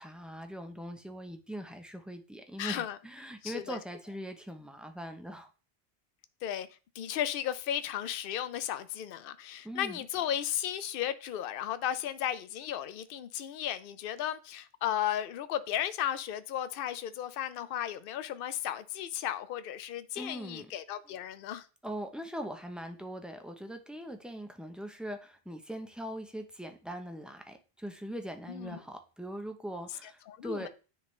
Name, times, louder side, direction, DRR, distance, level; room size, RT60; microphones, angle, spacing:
voice 1, 0.0-5.5 9.6-10.1 20.2-20.7 21.1-21.2 21.8-30.7, equal, ahead, 0.5 m, -41 dB
voice 2, 2.6-3.0 3.4-3.8 6.4-6.7 7.0-21.7 28.5-28.8 30.3-30.7, left 11 dB, 65° left, 0.7 m, -35 dB
9.5 x 3.6 x 3.2 m
omnidirectional pair, 1.1 m